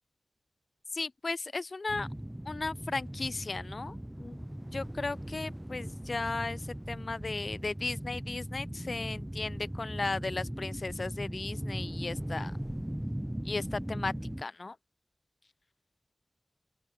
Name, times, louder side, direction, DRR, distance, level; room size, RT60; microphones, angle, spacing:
voice 1, 0.9-2.1 2.5-4.5 4.7-12.5 13.4-14.8, left 3 dB, 60° left, 0.3 m, -36 dB
sound 1, 1.9-14.4, equal, 10° right, 0.6 m, -38 dB
open air
wide cardioid pair, 60°, 0 cm